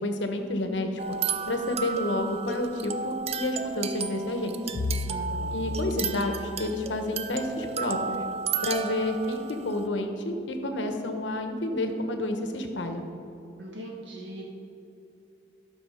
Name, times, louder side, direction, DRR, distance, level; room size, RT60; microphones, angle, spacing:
voice 1, 0.0-0.9 1.5-4.6 5.5-8.2 8.6-13.0, left 1 dB, 75° left, 5 dB, 1.0 m, -30 dB
sound 1, 1.0-9.9, right 6 dB, 35° right, 0.4 m, -33 dB
Bowed string instrument, 4.7-8.9, left 3 dB, 55° left, 0.5 m, -36 dB
voice 2, 5.1-5.7 13.6-14.4, right 1 dB, 70° right, -2 dB, 1.6 m, -40 dB
12.0 x 6.2 x 5.0 m, 2.8 s
head